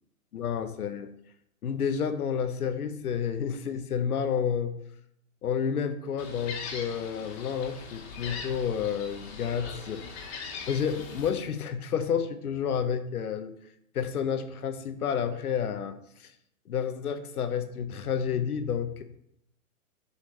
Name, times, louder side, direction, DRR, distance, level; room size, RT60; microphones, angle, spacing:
voice 1, 0.3-1.1 1.6-4.7 5.4-10.3 10.7-13.5 13.9-16.3 16.7-19.0, left 7 dB, 80° left, 9 dB, 1.1 m, -30 dB
Gull seagull, 6.2-11.3, left 5 dB, 45° left, 2.0 m, -41 dB
10.0 x 5.7 x 3.3 m, 0.76 s
hypercardioid pair, 140°, 44 cm